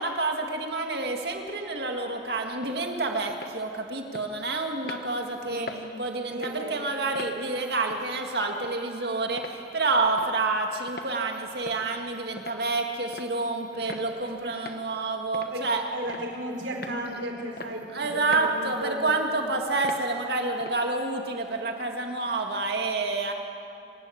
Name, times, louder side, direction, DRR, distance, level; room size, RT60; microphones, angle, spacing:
voice 1, 0.0-5.7 6.0-15.8 17.9-23.3, right 3 dB, 60° right, 3 dB, 2.1 m, -28 dB
sound 1, 2.6-2.8 3.3-3.6 4.1-4.3 4.8-5.0 5.7-5.8 6.3-6.6 7.1-7.4 7.9-8.1 8.6-8.7 9.4-9.6 10.2-10.3 10.9-11.1 11.7-11.9 12.4-12.6 13.1-13.3 13.9-14.1 14.7-14.8 15.3-15.5 16.1-16.3 16.8-17.0 17.6-17.7 18.3-18.6 19.1-19.2 19.8-20.0 20.6-20.8, left 3 dB, 50° left, 1.1 m, -40 dB
voice 2, 5.5-5.8 6.3-6.9 13.7-14.5 14.9-15.0 15.5-19.2, right 1 dB, 85° right, 1 dB, 3.5 m, -36 dB
26.5 x 12.0 x 8.6 m, 2.6 s
head